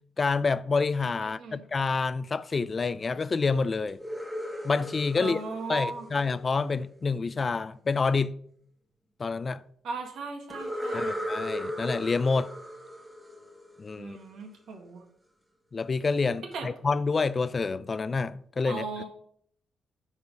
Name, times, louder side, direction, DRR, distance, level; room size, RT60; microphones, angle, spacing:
voice 1, 0.2-4.0 4.6-5.4 5.7-8.3 9.2-9.6 10.9-12.5 13.8-14.2 15.7-18.9, left 4 dB, 30° left, 0.3 m, -28 dB
voice 2, 1.2-1.6 5.1-6.1 9.8-11.2 14.0-15.0 16.5-16.7 18.6-19.0, right 3 dB, 75° right, 1.7 m, -37 dB
sound 1, 3.9-6.8 10.5-14.2, equal, 5° right, 1.3 m, -36 dB
8.1 x 4.8 x 5.2 m
cardioid pair, 140°, 0 cm